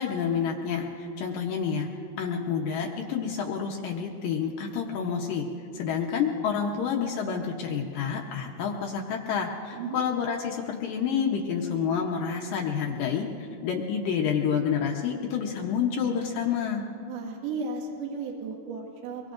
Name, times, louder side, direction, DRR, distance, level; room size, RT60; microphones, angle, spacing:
voice 1, 0.0-1.9 2.2-5.4 5.7-16.8, left 7 dB, 70° left, 0 dB, 2.2 m, -29 dB
voice 2, 17.1-19.3, right 4 dB, 70° right, -2 dB, 3.5 m, -35 dB
24.5 x 23.0 x 2.6 m, 2.4 s
omnidirectional pair, 4.8 m